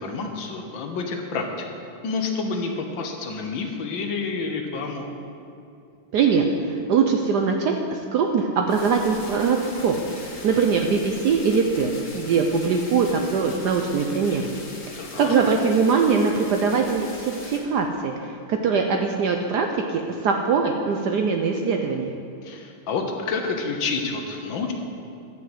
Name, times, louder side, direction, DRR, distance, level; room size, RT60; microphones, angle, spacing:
voice 1, 0.0-1.6 2.0-5.1 15.0-15.4 22.4-24.7, left 4 dB, 70° left, 3 dB, 1.7 m, -29 dB
voice 2, 6.1-14.6 14.9-22.1, right 5 dB, 70° right, 3 dB, 1.0 m, -22 dB
sound 1, 8.7-17.6, left 2 dB, 85° left, 2.4 m, -41 dB
11.0 x 5.5 x 7.8 m, 2.6 s
omnidirectional pair, 2.3 m